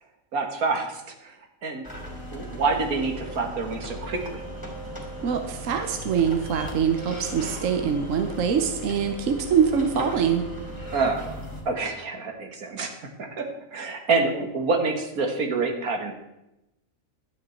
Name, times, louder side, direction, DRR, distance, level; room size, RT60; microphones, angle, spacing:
voice 1, 0.3-1.4 1.6-1.8 2.3-4.4 10.9-11.4 11.7-13.5 13.7-16.1, right 4 dB, 80° right, 4 dB, 2.0 m, -27 dB
sound 1, 1.8-11.6, equal, 15° left, 2.8 m, -37 dB
voice 2, 5.2-10.4, right 7 dB, 65° right, 5 dB, 1.2 m, -24 dB
12.0 x 9.4 x 4.4 m, 0.91 s
omnidirectional pair, 1.5 m